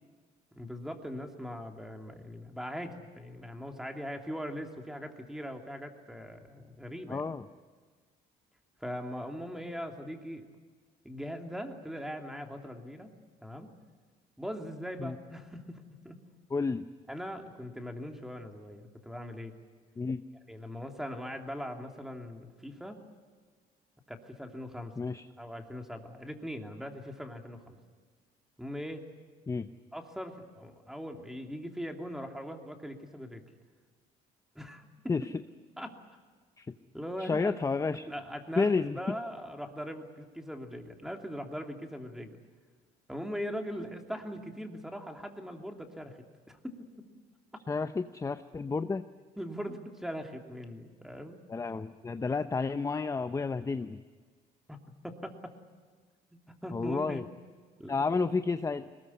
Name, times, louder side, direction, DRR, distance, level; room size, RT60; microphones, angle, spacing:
voice 1, 0.5-7.3 8.8-10.5 11.0-13.1 13.4-13.7 14.4-16.2 17.1-19.5 20.5-23.0 24.1-24.9 25.4-27.8 28.6-29.0 29.9-33.4 34.5-35.1 35.8-35.9 36.9-37.5 38.0-42.4 43.1-46.2 46.5-47.1 47.5-47.6 49.4-51.4 54.7-55.5 56.6-57.3 57.8-58.0, equal, 5° right, 4 dB, 2.9 m, -40 dB
voice 2, 7.1-7.4 15.0-15.2 16.5-16.8 20.0-20.2 25.0-25.3 29.5-29.7 35.1-35.2 36.6-36.7 37.2-38.1 38.6-39.0 47.7-49.0 51.5-54.0 56.7-57.2 57.9-58.9, left 4 dB, 20° left, 10 dB, 0.7 m, -31 dB
22.0 x 20.0 x 9.8 m, 1.5 s
cardioid pair, 110°, 17 cm